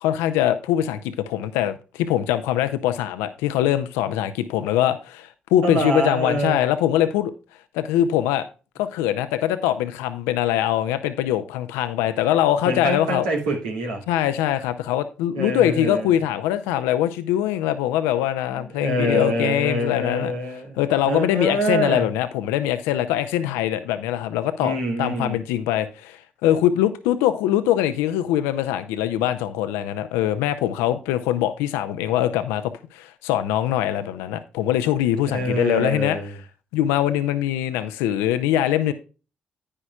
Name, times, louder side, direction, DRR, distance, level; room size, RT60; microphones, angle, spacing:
voice 1, 0.0-7.3 7.7-8.4 8.8-13.3 14.1-20.3 20.8-36.2 36.7-38.9, left 12 dB, 75° left, 0.5 m, -22 dB
voice 2, 5.6-6.6 12.6-14.0 15.3-16.1 18.5-20.8 21.0-22.1 24.6-25.4 35.3-36.3, right 1 dB, 85° right, 2.3 m, -25 dB
9.9 x 9.8 x 2.3 m
hypercardioid pair, 40°, 4 cm